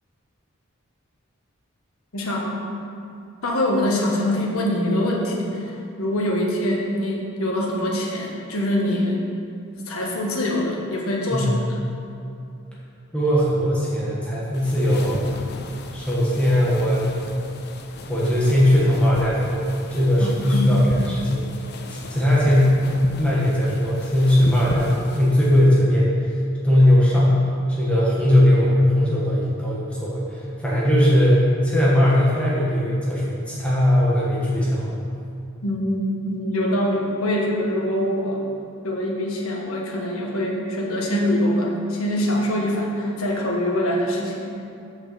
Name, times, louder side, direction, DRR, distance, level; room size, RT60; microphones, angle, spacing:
voice 1, 2.1-2.6 3.4-9.2 9.9-11.5 20.2-20.8 35.6-38.4 38.8-44.5, left 1 dB, 90° left, -2 dB, 1.3 m, -24 dB
voice 2, 13.1-15.2 15.9-17.2 18.1-21.4 21.9-26.4 26.6-27.4 27.7-35.0, left 1 dB, 5° left, -7 dB, 1.3 m, -19 dB
sound 1, 14.5-25.7, left 2 dB, 50° left, 0.6 m, -37 dB
6.6 x 5.6 x 6.6 m, 2.6 s
head